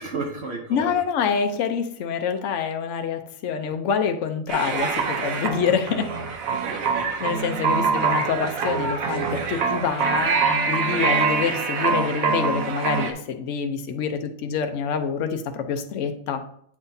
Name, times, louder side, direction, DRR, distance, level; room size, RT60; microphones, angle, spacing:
voice 1, 0.0-1.0 5.2-5.8 6.1-7.2 7.5-7.8, right 3 dB, 55° right, 2 dB, 1.0 m, -35 dB
voice 2, 0.7-6.1 7.2-10.4 10.7-16.4, left 6 dB, 65° left, 7 dB, 1.0 m, -26 dB
sound 1, 4.5-13.1, right 5 dB, 80° right, 1.3 m, -24 dB
8.6 x 6.0 x 2.7 m, 0.66 s
omnidirectional pair, 1.5 m